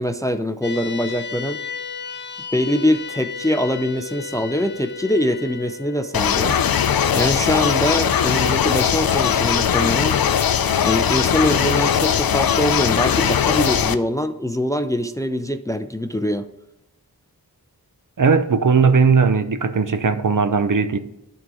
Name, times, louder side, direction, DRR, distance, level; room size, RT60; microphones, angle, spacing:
voice 1, 0.0-1.6 2.5-6.6 7.1-10.2 10.8-16.5, equal, 10° left, 0.5 m, -23 dB
sound 1, 0.6-13.3, left 5 dB, 30° left, 1.1 m, -37 dB
sound 2, 6.1-14.0, left 8 dB, 65° left, 0.5 m, -19 dB
voice 2, 18.2-21.0, right 5 dB, 55° right, 0.7 m, -17 dB
11.0 x 3.8 x 5.1 m
wide cardioid pair, 45°, 39 cm